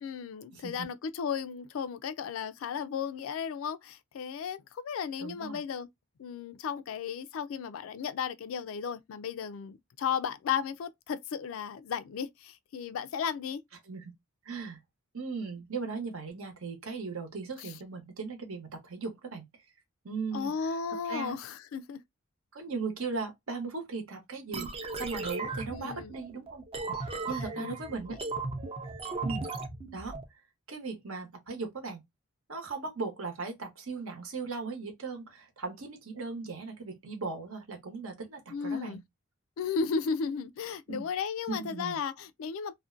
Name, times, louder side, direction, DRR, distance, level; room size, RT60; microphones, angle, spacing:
voice 1, 0.0-5.9 6.2-13.6 17.6-17.7 20.3-22.0 25.7-26.2 27.6-27.7 38.5-39.0 39.6-42.7, left 6 dB, 70° left, 0.3 m, -34 dB
voice 2, 0.5-0.9 5.2-5.6 13.9-14.1 14.4-14.8 15.1-19.5 20.0-20.8 21.1-21.4 22.5-26.6 27.0-28.2 29.2-29.5 29.9-30.1 30.7-32.0 32.5-39.0 40.9-41.1 41.5-42.0, right 4 dB, 80° right, 0.9 m, -38 dB
sound 1, 24.5-30.2, right 3 dB, 25° right, 0.4 m, -37 dB
2.5 x 2.1 x 2.4 m
head